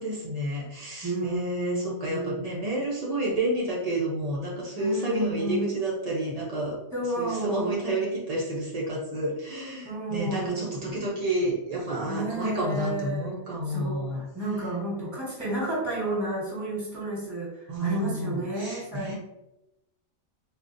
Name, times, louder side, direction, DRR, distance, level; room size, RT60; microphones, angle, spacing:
voice 1, 0.0-6.8 7.2-14.2 17.7-19.2, right 1 dB, 75° right, -4 dB, 0.3 m, -30 dB
voice 2, 1.0-2.4 4.8-5.7 6.9-7.8 9.8-10.8 12.0-13.3 13.7-17.5 17.8-19.2, right 1 dB, 15° right, -6 dB, 1.1 m, -31 dB
3.6 x 2.4 x 2.5 m, 0.92 s
omnidirectional pair, 1.5 m